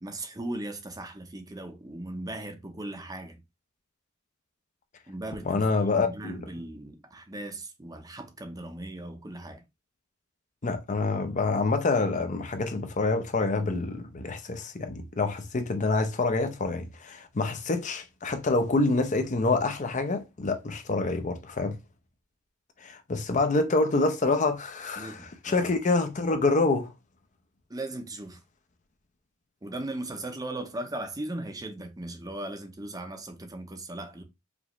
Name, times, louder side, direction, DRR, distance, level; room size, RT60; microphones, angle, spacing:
voice 1, 0.0-3.4 5.1-5.7 6.0-9.6 25.0-25.7 27.7-28.4 29.6-34.2, right 1 dB, 20° right, 0.6 m, -38 dB
voice 2, 5.4-6.5 10.6-21.8 22.8-26.9, left 3 dB, 35° left, 0.6 m, -27 dB
5.1 x 2.4 x 3.0 m
head